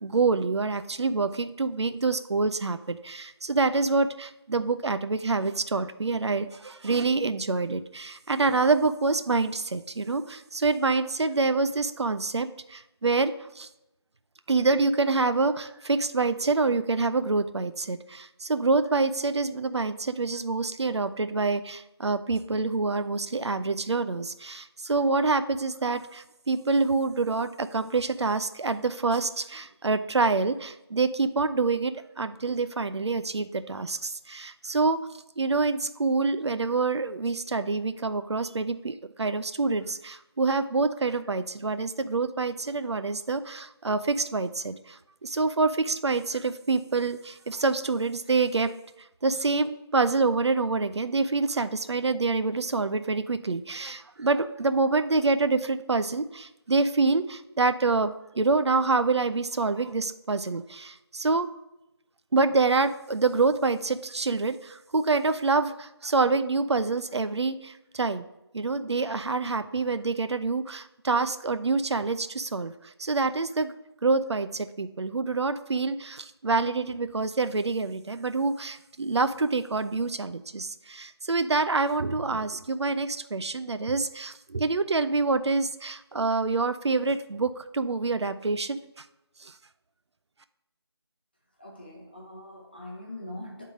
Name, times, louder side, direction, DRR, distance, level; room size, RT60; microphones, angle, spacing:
voice 1, 0.0-13.7 14.5-35.0 35.4-48.7 49.2-61.5 62.3-68.3 68.5-73.7 74.0-89.0 89.4-89.5, right 3 dB, 80° right, 10 dB, 0.5 m, -26 dB
voice 2, 91.6-93.7, left 1 dB, 20° left, -2 dB, 0.8 m, -42 dB
9.2 x 3.7 x 3.6 m, 0.92 s
figure-of-eight pair, 180°, 14 cm